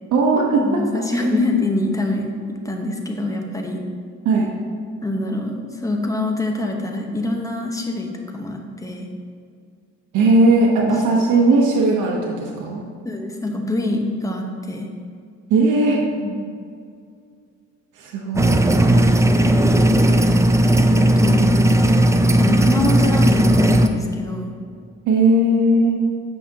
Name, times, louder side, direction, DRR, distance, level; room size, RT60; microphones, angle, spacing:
voice 1, 0.1-0.8 4.2-4.5 10.1-12.8 15.5-16.0 17.9-18.6 25.1-26.0, right 2 dB, 80° right, -1 dB, 0.9 m, -17 dB
voice 2, 0.6-3.8 5.0-9.1 10.8-10.9 13.0-14.9 16.2-16.4 21.0-21.6 22.4-24.5, left 1 dB, 10° left, 2 dB, 0.9 m, -25 dB
sound 1, 18.4-23.9, right 1 dB, 10° right, 0.4 m, -15 dB
8.3 x 5.6 x 2.8 m, 2.2 s
cardioid pair, 90°, 30 cm